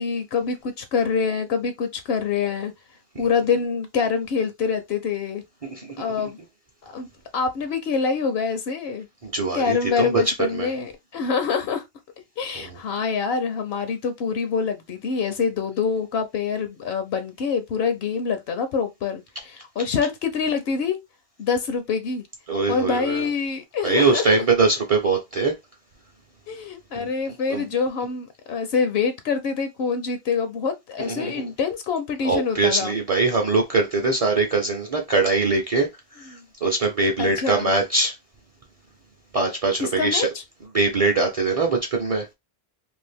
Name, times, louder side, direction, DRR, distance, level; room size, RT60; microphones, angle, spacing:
voice 1, 0.0-2.7 3.2-5.4 6.0-6.4 6.8-7.1 7.3-9.1 9.5-11.8 12.4-21.0 21.4-22.2 22.7-24.4 26.5-32.9 36.3-36.4 37.2-37.7 39.8-40.4, left 5 dB, 75° left, 0.8 m, -25 dB
voice 2, 5.6-5.9 9.2-10.2 10.5-10.7 12.6-12.8 22.5-23.3 23.8-25.5 27.0-27.1 27.5-27.6 31.0-31.3 32.2-35.9 36.2-38.1 39.3-40.3 40.7-42.3, right 3 dB, 40° right, 0.6 m, -22 dB
2.7 x 2.4 x 3.3 m
omnidirectional pair, 1.1 m